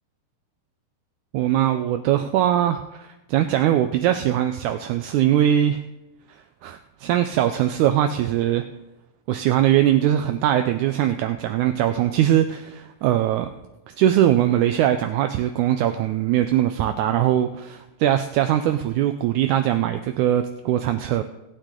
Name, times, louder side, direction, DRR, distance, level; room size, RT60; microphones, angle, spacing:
voice 1, 1.3-5.8 6.6-8.6 9.3-13.5 14.0-21.2, right 11 dB, 85° right, 7 dB, 1.7 m, -21 dB
18.5 x 9.0 x 3.8 m, 0.96 s
omnidirectional pair, 4.1 m